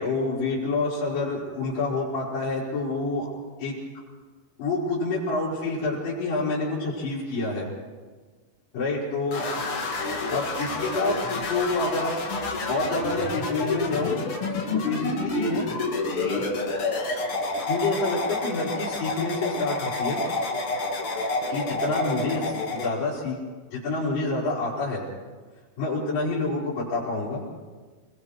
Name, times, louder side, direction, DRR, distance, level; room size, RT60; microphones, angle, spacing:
voice 1, 0.0-3.3 3.6-3.7 4.6-7.7 8.7-9.4 10.3-12.2 12.7-14.2 14.5-15.7 16.1-16.5 17.6-20.2 21.5-23.4 23.7-25.0 25.8-27.4, left 3 dB, 60° left, -9 dB, 5.8 m, -28 dB
sound 1, 9.3-22.9, left 3 dB, 40° left, 2.4 m, -29 dB
29.0 x 21.0 x 4.8 m, 1.4 s
omnidirectional pair, 4.6 m